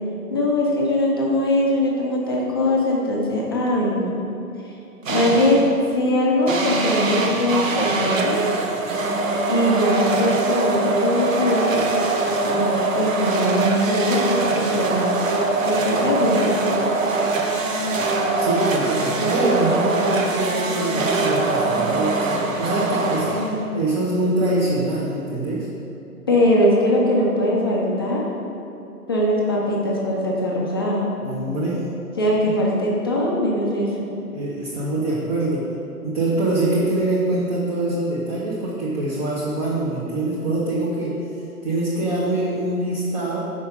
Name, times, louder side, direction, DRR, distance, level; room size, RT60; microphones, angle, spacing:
voice 1, 0.3-4.1 4.6-4.7 5.1-5.7 5.9-8.4 9.5-11.8 12.4-15.0 15.6-16.5 23.3-23.7 26.3-28.2 29.1-31.1 32.2-34.1, left 1 dB, 15° left, -4 dB, 0.4 m, -21 dB
sound 1, 5.1-5.7 6.5-23.8, right 3 dB, 55° right, 0.9 m, -23 dB
voice 2, 18.4-23.3 23.7-25.7 31.2-31.9 32.4-32.5 34.3-35.7 36.0-41.2 41.6-43.4, right 2 dB, 25° right, -7 dB, 0.9 m, -24 dB
5.5 x 4.9 x 5.3 m, 2.9 s
figure-of-eight pair, 130°, 46 cm